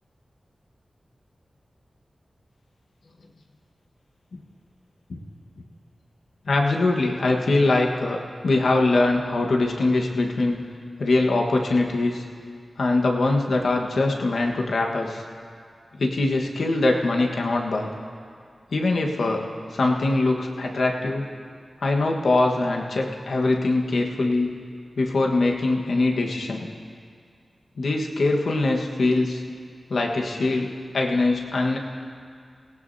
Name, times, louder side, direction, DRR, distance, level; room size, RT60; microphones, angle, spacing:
voice 1, 6.4-10.6 11.0-12.2 12.8-15.2 16.0-17.9 18.7-19.4 19.7-21.2 21.8-24.5 25.0-26.7 27.8-29.4 29.9-31.8, left 2 dB, 80° left, 1 dB, 1.3 m, -22 dB
18.0 x 17.5 x 2.7 m, 2.2 s
cardioid pair, 50°, 0 cm